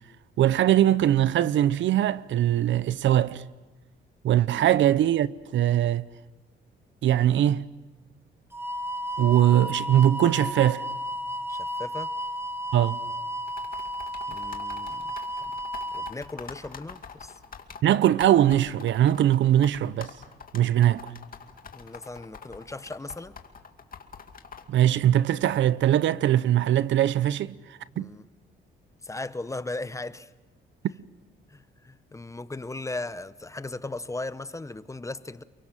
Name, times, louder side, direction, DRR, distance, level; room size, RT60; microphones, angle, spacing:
voice 1, 0.4-3.4 4.2-6.1 7.0-7.7 9.2-10.9 12.7-13.0 17.8-20.1 20.5-21.1 24.7-27.6 28.0-28.1, right 12 dB, 70° right, 0.8 m, -21 dB
sound 1, 8.5-16.1, equal, 10° right, 1.4 m, -33 dB
voice 2, 11.5-12.1 14.3-15.1 15.9-17.4 21.7-23.4 27.9-28.2 29.0-30.3 31.5-35.4, left 2 dB, 15° left, 0.9 m, -37 dB
sound 2, 13.5-24.6, left 6 dB, 45° left, 2.4 m, -43 dB
29.0 x 23.5 x 7.5 m
cardioid pair, 90°, 20 cm